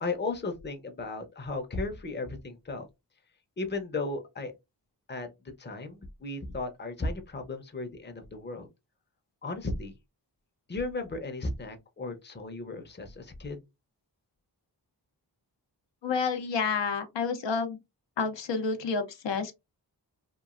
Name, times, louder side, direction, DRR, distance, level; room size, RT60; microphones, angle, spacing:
voice 1, 0.0-2.9 3.6-4.5 5.1-8.7 9.4-9.9 10.7-13.6, left 3 dB, 25° left, 0.6 m, -35 dB
voice 2, 16.0-17.8 18.2-19.5, left 5 dB, 75° left, 0.6 m, -29 dB
2.9 x 2.3 x 2.4 m
wide cardioid pair, 60°, 44 cm